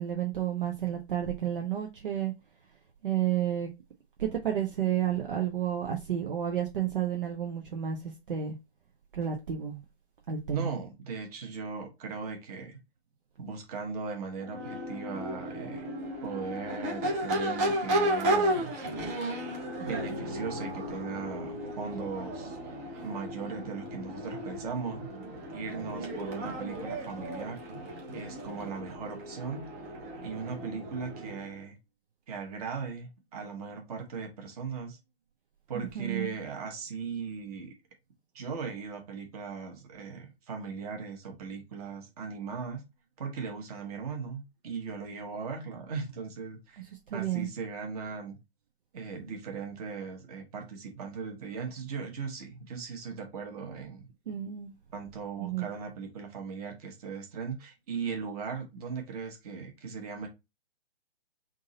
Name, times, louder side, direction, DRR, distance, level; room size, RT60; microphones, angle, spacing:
voice 1, 0.0-2.3 3.0-3.7 4.2-8.6 9.1-9.8 10.3-10.7 35.7-36.4 46.8-47.5 54.3-54.7 55.4-55.6, right 10 dB, 55° right, 0.8 m, -31 dB
voice 2, 10.5-12.8 13.4-15.9 16.2-18.7 19.8-22.6 23.0-25.1 25.5-27.6 28.1-29.7 30.2-31.8 32.3-35.0 35.7-37.7 38.3-42.8 43.2-46.8 47.1-48.4 48.9-54.1 54.9-60.3, right 5 dB, 35° right, 1.3 m, -38 dB
Crowd / Race car auto racing / Accelerating revving vroom, 14.4-31.5, right 1 dB, 15° right, 0.6 m, -34 dB
3.7 x 2.6 x 3.9 m
figure-of-eight pair, 135°, 32 cm